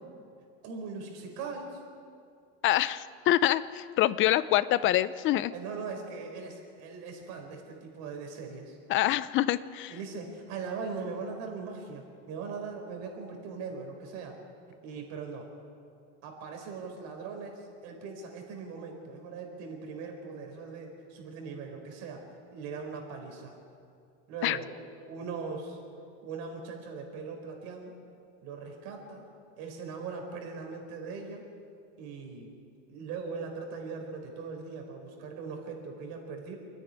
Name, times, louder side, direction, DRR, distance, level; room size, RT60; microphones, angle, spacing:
voice 1, 0.6-1.8 5.5-8.8 9.9-14.4 14.8-15.5 16.2-22.2 22.5-23.5 24.3-24.7 25.1-25.8 26.2-28.0 28.4-29.3 29.6-31.4 32.0-32.5 32.9-36.5, right 4 dB, 55° right, 3 dB, 4.6 m, -40 dB
voice 2, 2.6-5.5 8.9-9.9 24.4-24.6, left 14 dB, 35° left, 16 dB, 0.6 m, -26 dB
28.0 x 9.9 x 9.6 m, 2.4 s
supercardioid pair, 150°, 33 cm